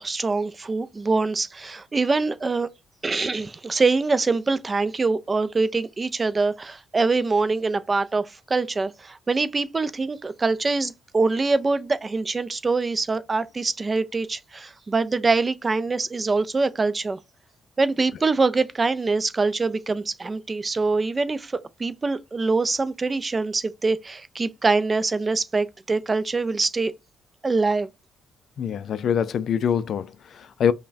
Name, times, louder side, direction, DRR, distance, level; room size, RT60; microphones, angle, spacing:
voice 1, 0.0-2.7 3.0-17.2 17.8-26.9 27.4-27.9, right 3 dB, 30° right, 0.4 m, -24 dB
voice 2, 28.6-30.7, left 8 dB, 60° left, 0.3 m, -24 dB
5.3 x 2.1 x 2.5 m
cardioid pair, 90°, 0 cm